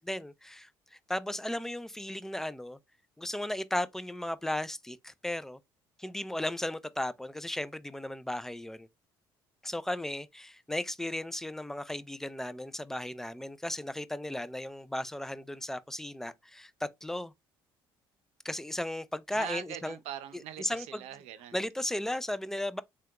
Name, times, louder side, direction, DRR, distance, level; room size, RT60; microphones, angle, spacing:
voice 1, 0.1-2.8 3.2-5.6 6.0-8.9 9.6-17.3 18.4-20.0 20.6-21.0 21.5-22.8, left 1 dB, 5° left, 0.3 m, -35 dB
voice 2, 19.3-21.6, right 11 dB, 70° right, 0.6 m, -42 dB
3.5 x 2.3 x 2.8 m
supercardioid pair, 70°, 11 cm